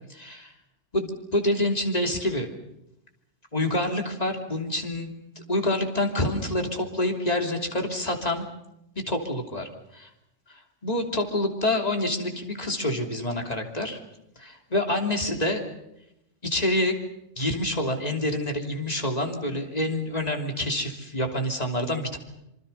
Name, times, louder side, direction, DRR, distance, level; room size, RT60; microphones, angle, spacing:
voice 1, 0.1-0.5 0.9-2.5 3.5-5.1 5.5-8.5 9.1-9.7 9.9-10.1 10.5-14.0 14.4-15.6 16.4-17.0 17.4-22.2, left 1 dB, 30° left, 2 dB, 3.3 m, -27 dB
26.0 x 25.5 x 5.7 m, 0.85 s
omnidirectional pair, 1.3 m